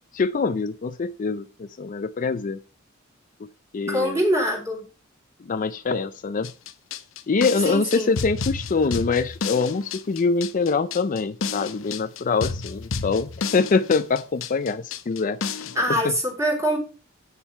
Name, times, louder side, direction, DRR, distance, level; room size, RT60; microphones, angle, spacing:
voice 1, 0.1-1.5 1.8-2.6 3.7-4.2 5.5-6.5 7.3-15.7 16.0-16.1, left 4 dB, 40° left, 11 dB, 0.4 m, -24 dB
voice 2, 3.9-4.8 7.6-8.1 15.8-16.8, equal, 15° right, 1 dB, 3.6 m, -23 dB
sound 1, 6.4-15.8, left 5 dB, 80° left, 0.7 m, -31 dB
8.4 x 7.2 x 4.3 m, 0.33 s
head